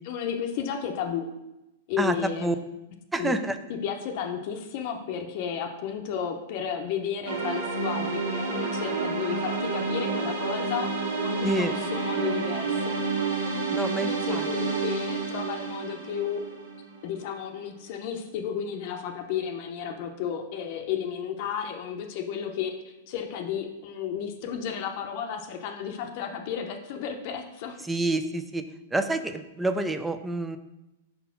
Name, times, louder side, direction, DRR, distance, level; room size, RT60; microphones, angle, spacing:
voice 1, 0.0-1.3 1.9-2.6 3.2-3.3 3.7-12.8 13.8-16.4 17.0-27.8, left 8 dB, 50° left, 4 dB, 0.7 m, -33 dB
voice 2, 2.0-2.6 3.1-3.6 11.4-11.7 13.7-14.5 27.8-28.6 28.9-30.6, right 2 dB, 10° right, 10 dB, 0.4 m, -28 dB
sound 1, 7.2-17.2, right 4 dB, 80° right, 2.0 m, -29 dB
5.4 x 4.2 x 5.6 m, 0.95 s
hypercardioid pair, 145°, 0 cm